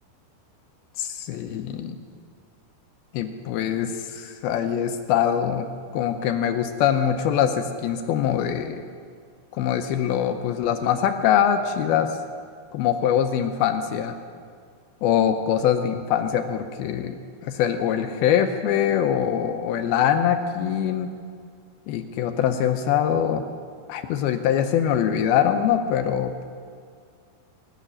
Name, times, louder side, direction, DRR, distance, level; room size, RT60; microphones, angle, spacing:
voice 1, 1.0-2.0 3.1-5.7 5.9-8.8 9.5-12.1 12.7-14.2 15.0-17.2 17.4-21.1 21.9-23.4 23.9-26.4, left 9 dB, 80° left, 7 dB, 2.4 m, -23 dB
19.0 x 6.8 x 9.9 m, 2.1 s
omnidirectional pair, 4.7 m